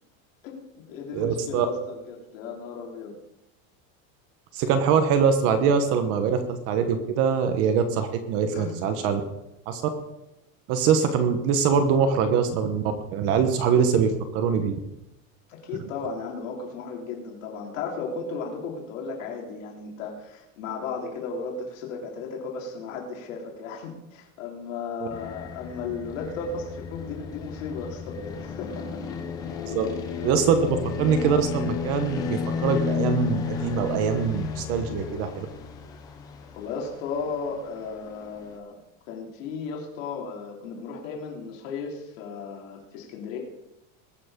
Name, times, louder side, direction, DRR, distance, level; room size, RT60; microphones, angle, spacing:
voice 1, 0.4-3.1 8.5-8.7 15.5-28.9 29.8-30.0 30.5-30.6 36.5-38.8 39.1-43.4, left 4 dB, 70° left, -1 dB, 3.6 m, -35 dB
voice 2, 1.1-1.7 4.5-9.2 9.7-9.8 10.7-14.8 25.0-25.1 29.7-29.9 30.2-35.5, right 6 dB, 35° right, 8 dB, 1.0 m, -23 dB
sound 1, 25.1-38.6, left 6 dB, 10° left, 0.3 m, -33 dB
20.5 x 6.9 x 5.1 m, 0.91 s
supercardioid pair, 180°, 41 cm